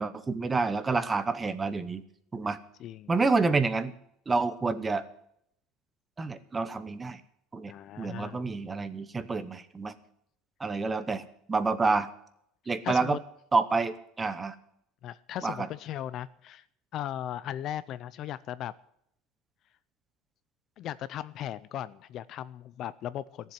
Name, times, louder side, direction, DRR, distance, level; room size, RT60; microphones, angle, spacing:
voice 1, 0.0-2.0 2.3-2.6 3.1-3.9 4.3-5.0 6.2-7.2 7.5-10.0 10.6-11.2 11.5-12.1 12.7-13.2 13.5-14.6 15.4-15.7, right 4 dB, 15° right, 14 dB, 0.8 m, -28 dB
voice 2, 2.8-3.1 7.7-8.4 12.8-13.2 15.0-16.6 16.9-18.7 20.8-23.5, left 11 dB, 40° left, 17 dB, 0.5 m, -37 dB
15.5 x 7.5 x 9.4 m, 0.72 s
cardioid pair, 165°, 0 cm